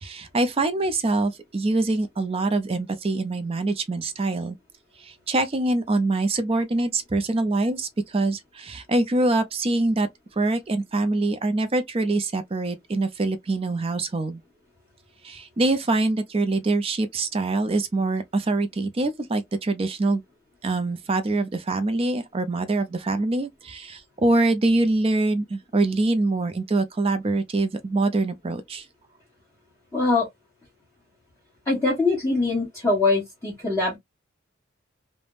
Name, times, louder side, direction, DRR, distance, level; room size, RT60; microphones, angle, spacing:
voice 1, 0.0-4.6 5.0-10.1 10.4-14.4 15.2-20.2 20.6-28.9, right 2 dB, 25° right, 0.4 m, -24 dB
voice 2, 29.9-30.3 31.6-34.0, left 3 dB, 15° left, 1.1 m, -22 dB
3.3 x 2.1 x 2.4 m
head